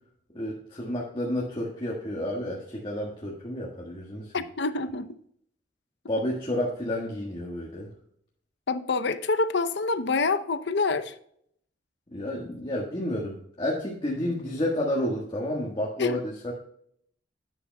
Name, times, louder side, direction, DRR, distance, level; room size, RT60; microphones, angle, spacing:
voice 1, 0.3-4.3 6.1-7.9 12.1-16.5, left 1 dB, 25° left, 1.5 m, -30 dB
voice 2, 4.3-5.2 8.7-11.2 16.0-16.2, left 3 dB, 65° left, 0.7 m, -26 dB
10.5 x 8.9 x 2.2 m
head